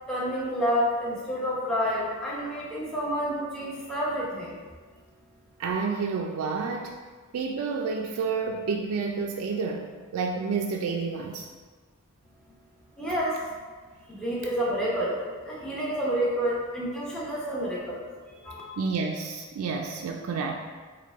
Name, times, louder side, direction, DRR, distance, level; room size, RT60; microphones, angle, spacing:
voice 1, 0.1-4.6 13.0-13.5 14.1-18.0 18.3-18.6, equal, 5° left, -6 dB, 0.8 m, -29 dB
voice 2, 5.6-6.9 7.3-11.5 18.8-20.5, right 5 dB, 90° right, 2 dB, 0.3 m, -29 dB
4.6 x 2.2 x 3.4 m, 1.4 s
head